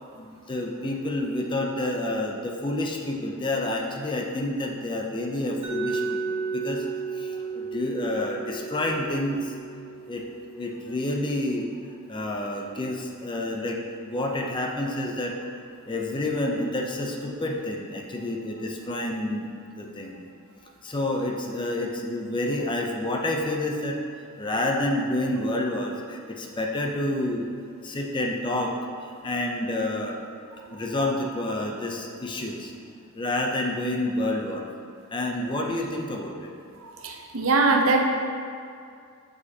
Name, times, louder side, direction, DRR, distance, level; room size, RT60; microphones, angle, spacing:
voice 1, 0.1-6.9 7.1-9.5 10.1-10.2 10.5-11.7 12.1-15.4 15.8-20.2 20.8-24.0 24.4-27.5 27.8-30.2 30.7-32.7 33.2-34.6 35.1-36.5, left 1 dB, 20° left, 1 dB, 0.5 m, -29 dB
Mallet percussion, 5.6-11.5, right 4 dB, 30° right, 1.5 m, -33 dB
voice 2, 36.8-38.0, right 3 dB, 70° right, 2 dB, 0.7 m, -22 dB
7.3 x 6.4 x 2.8 m, 2.4 s
head